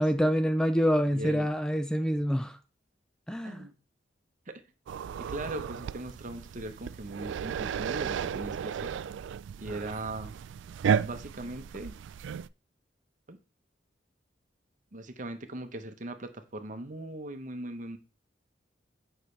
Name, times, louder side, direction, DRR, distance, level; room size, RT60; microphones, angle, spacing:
voice 1, 0.0-2.6 3.3-3.7, equal, 5° left, 0.4 m, -26 dB
voice 2, 1.1-1.5 3.4-3.7 4.5-4.6 5.2-8.9 9.6-10.4 11.0-12.0 13.3-13.4 14.9-18.0, right 1 dB, 45° right, 0.9 m, -39 dB
sound 1, 4.9-12.5, right 7 dB, 85° right, 0.3 m, -34 dB
9.1 x 5.6 x 3.2 m
head